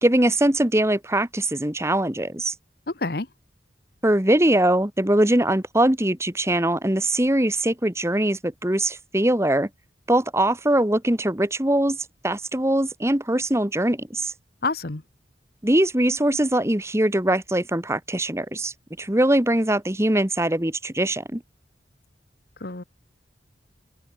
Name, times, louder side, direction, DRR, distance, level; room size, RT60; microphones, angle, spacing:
voice 1, 0.0-2.5 4.0-9.7 10.1-12.0 12.2-14.3 15.6-21.4, right 1 dB, 15° right, 1.5 m, -22 dB
voice 2, 14.6-15.0 22.6-22.8, left 3 dB, 60° left, 1.3 m, -27 dB
open air
head